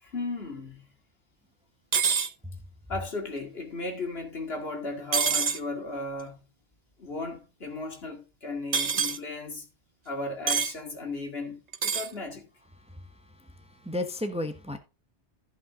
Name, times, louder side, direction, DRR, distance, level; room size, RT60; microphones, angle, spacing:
voice 1, 0.0-0.9 2.9-6.4 7.0-9.7 10.1-12.5, left 2 dB, 55° left, 2.5 m, -35 dB
sound 1, 1.9-2.3 5.1-5.6 8.7-9.2 10.5-10.7 11.7-12.1, right 6 dB, 40° right, 0.8 m, -25 dB
voice 2, 13.6-14.8, left 1 dB, 5° right, 1.1 m, -32 dB
14.5 x 5.5 x 3.7 m
omnidirectional pair, 1.2 m